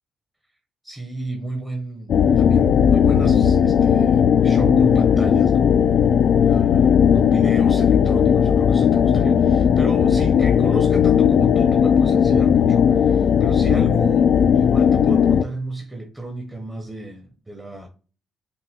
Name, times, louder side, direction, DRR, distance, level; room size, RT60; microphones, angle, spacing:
voice 1, 0.8-5.8 6.4-17.9, right 2 dB, 15° right, 1.0 m, -33 dB
sound 1, 2.1-15.4, left 8 dB, 60° left, 0.4 m, -16 dB
5.4 x 2.6 x 3.6 m
cardioid pair, 90°, 0 cm